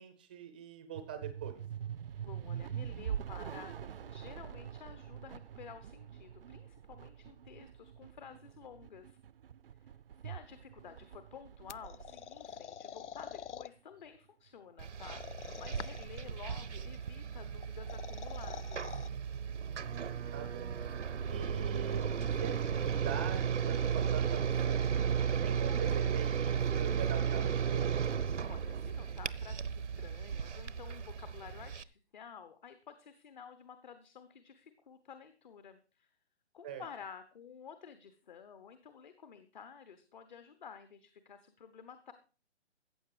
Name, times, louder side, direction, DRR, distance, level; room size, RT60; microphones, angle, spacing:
voice 1, 0.0-1.6 19.7-20.7 21.3-22.6 22.8-24.8 25.4-27.9 36.6-36.8, right 8 dB, 10° right, 9 dB, 0.5 m, -44 dB
sound 1, 0.9-13.5, right 9 dB, 55° right, 0.5 m, -44 dB
voice 2, 2.2-9.2 9.8-9.9 10.2-19.0 28.5-36.1 36.5-42.1, left 7 dB, 40° left, 10 dB, 1.1 m, -52 dB
sound 2, 11.7-13.7 15.0-16.2 17.6-19.1, left 9 dB, 85° left, 0.5 m, -46 dB
sound 3, 14.8-31.8, right 7 dB, 90° right, 0.9 m, -34 dB
14.5 x 8.1 x 5.0 m, 0.36 s
hypercardioid pair, 155°, 35 cm